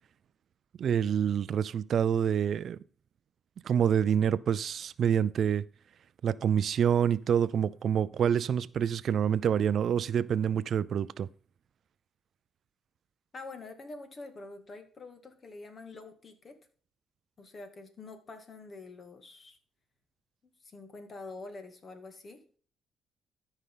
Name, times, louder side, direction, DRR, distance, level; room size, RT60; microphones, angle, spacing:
voice 1, 0.8-2.8 3.6-5.6 6.2-11.3, right 8 dB, 60° right, 0.4 m, -27 dB
voice 2, 13.3-16.6 17.4-19.6 20.6-22.4, left 3 dB, 40° left, 2.2 m, -46 dB
13.5 x 5.5 x 3.8 m
cardioid pair, 90°, 0 cm